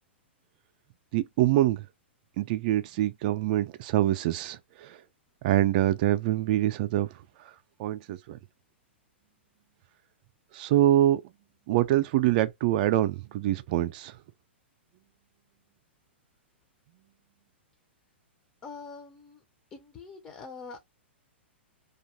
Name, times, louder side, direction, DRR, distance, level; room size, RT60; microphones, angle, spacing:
voice 1, 1.1-1.9 2.4-5.0 5.4-8.4 10.5-11.2 11.7-14.2, right 13 dB, 45° right, 0.3 m, -25 dB
voice 2, 18.6-19.4 19.7-20.8, left 4 dB, 25° left, 0.6 m, -44 dB
2.5 x 2.3 x 2.9 m
figure-of-eight pair, 105°, 6 cm